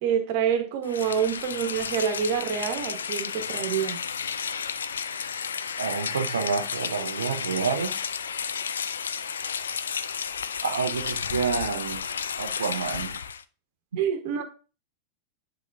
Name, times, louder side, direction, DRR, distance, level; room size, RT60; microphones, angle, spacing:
voice 1, 0.0-4.0 14.0-14.4, right 8 dB, 45° right, 1.4 m, -27 dB
Rain, 0.8-13.4, left 7 dB, 70° left, 0.4 m, -32 dB
voice 2, 5.8-8.0 10.6-12.1 12.4-13.2, right 6 dB, 70° right, 0.6 m, -28 dB
9.9 x 3.9 x 2.7 m
figure-of-eight pair, 90°, 0 cm